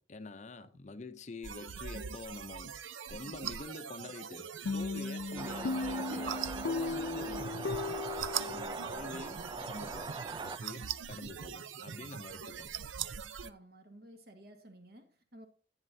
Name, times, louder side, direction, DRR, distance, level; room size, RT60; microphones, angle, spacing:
voice 1, 0.0-2.8 3.1-7.9 8.9-12.7, left 3 dB, 40° left, 0.6 m, -47 dB
sound 1, 1.4-13.5, right 8 dB, 90° right, 0.6 m, -42 dB
sound 2, 4.7-9.3, left 3 dB, 85° left, 0.5 m, -37 dB
sound 3, 5.4-10.6, right 3 dB, 20° right, 0.4 m, -42 dB
voice 2, 8.4-9.1 13.4-15.5, right 1 dB, 55° right, 1.9 m, -54 dB
11.0 x 9.0 x 2.7 m
head